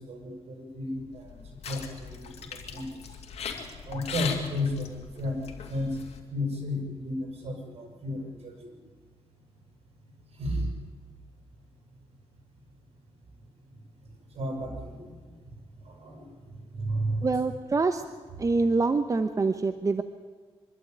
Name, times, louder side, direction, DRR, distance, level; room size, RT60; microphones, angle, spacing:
voice 1, 0.0-1.4 1.7-2.9 3.9-5.4 5.7-6.0 6.3-8.6 10.4-10.7 14.3-15.1 15.8-16.3 16.8-17.3, left 1 dB, 70° right, 2 dB, 6.5 m, -33 dB
sound 1, 1.1-6.2, left 6 dB, 85° left, 2.6 m, -39 dB
voice 2, 17.2-18.0 18.4-20.0, right 3 dB, 30° right, 9 dB, 0.9 m, -25 dB
24.5 x 12.5 x 9.4 m, 1.5 s
cardioid pair, 105°, 10 cm